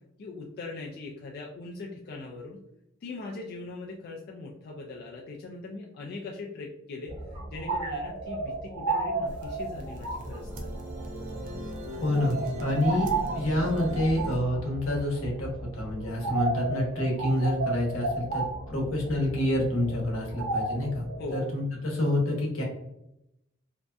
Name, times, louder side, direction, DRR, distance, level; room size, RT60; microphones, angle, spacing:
voice 1, 0.2-2.6 3.0-10.7 21.2-21.4, left 3 dB, 50° left, -1 dB, 0.3 m, -40 dB
sound 1, 7.1-21.4, right 3 dB, 85° right, 0.7 m, -34 dB
sound 2, 9.3-14.4, equal, 40° right, 0.4 m, -39 dB
voice 2, 12.0-21.1 21.3-22.6, left 1 dB, 85° left, -2 dB, 0.8 m, -28 dB
2.6 x 2.1 x 2.2 m, 0.84 s
head